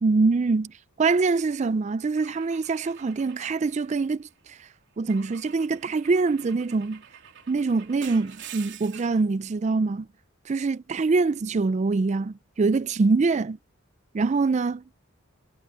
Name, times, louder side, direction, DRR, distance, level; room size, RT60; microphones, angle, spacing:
voice 1, 0.0-4.7 5.0-7.0 7.5-10.1 10.5-13.6 14.1-14.9, right 4 dB, 35° right, 0.3 m, -24 dB
Car / Engine / Glass, 2.2-4.4 5.1-9.3, right 8 dB, 60° right, 3.4 m, -47 dB
head